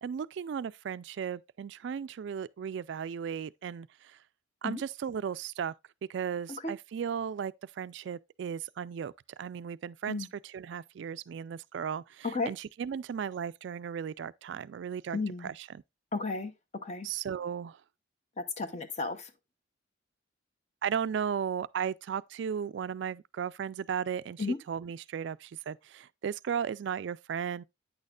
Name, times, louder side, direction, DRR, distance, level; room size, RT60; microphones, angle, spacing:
voice 1, 0.0-4.2 4.6-5.7 6.1-9.1 9.4-15.7 17.0-17.8 20.8-27.6, right 7 dB, 60° right, 0.3 m, -35 dB
voice 2, 15.1-15.5 16.1-16.5 16.8-17.1 18.4-19.2 24.4-24.6, left 3 dB, 35° left, 0.8 m, -33 dB
8.9 x 6.4 x 2.4 m
head